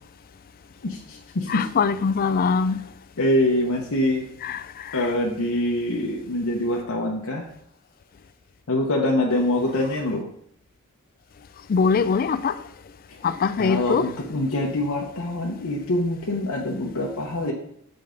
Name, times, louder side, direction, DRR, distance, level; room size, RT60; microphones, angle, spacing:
voice 1, 0.8-1.7 3.2-4.3 4.9-7.5 8.7-10.3 13.1-13.2 13.6-17.5, left 1 dB, 70° left, 0.9 m, -24 dB
voice 2, 1.5-2.8 4.4-4.6 11.7-12.5 13.2-14.1, left 5 dB, 40° left, 0.3 m, -22 dB
6.8 x 5.2 x 3.8 m
head